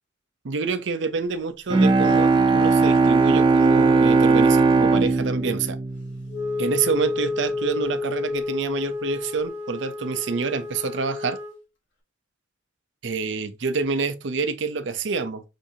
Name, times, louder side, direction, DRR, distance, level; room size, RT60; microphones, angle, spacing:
voice 1, 0.4-5.8 6.6-11.4 13.0-15.4, right 4 dB, 75° right, 0.6 m, -27 dB
Bowed string instrument, 1.7-6.8, right 3 dB, 25° right, 0.5 m, -19 dB
Wind instrument woodwind instrument, 6.3-11.6, left 3 dB, 80° left, 1.5 m, -30 dB
6.3 x 2.7 x 2.7 m
head